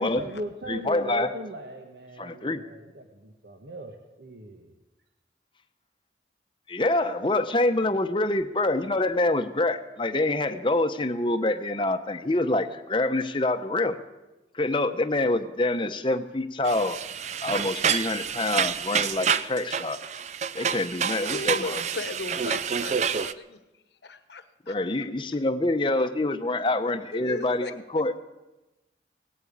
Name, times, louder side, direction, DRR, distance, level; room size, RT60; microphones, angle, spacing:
voice 1, 0.0-4.7, right 1 dB, 65° right, 2 dB, 1.4 m, -39 dB
voice 2, 0.7-1.3 2.2-2.7 6.7-14.0 14.5-17.0 17.4-20.0 20.5-21.8 24.7-28.1, left 2 dB, 30° left, 8 dB, 0.8 m, -26 dB
sound 1, 16.7-23.3, right 7 dB, 40° right, 0.5 m, -28 dB
voice 3, 21.2-23.6 24.0-24.8 27.1-27.7, left 3 dB, 75° left, 12 dB, 1.1 m, -37 dB
18.0 x 9.0 x 8.7 m, 1.0 s
head